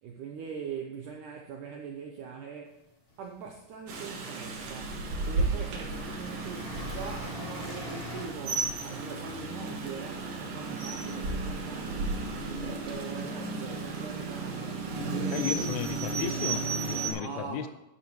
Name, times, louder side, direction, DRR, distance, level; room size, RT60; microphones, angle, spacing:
voice 1, 0.0-2.8 3.2-5.0 5.3-12.3 12.6-15.7 17.0-17.7, right 6 dB, 80° right, 1 dB, 1.8 m, -42 dB
sound 1, 2.9-3.7 4.6-4.7 5.0-8.2, left 2 dB, 45° left, 0.7 m, -43 dB
Rain, 3.9-17.1, right 3 dB, 60° right, 1.7 m, -34 dB
voice 2, 15.3-17.7, left 10 dB, 85° left, 10 dB, 2.3 m, -35 dB
11.5 x 10.5 x 3.1 m, 0.92 s
omnidirectional pair, 4.8 m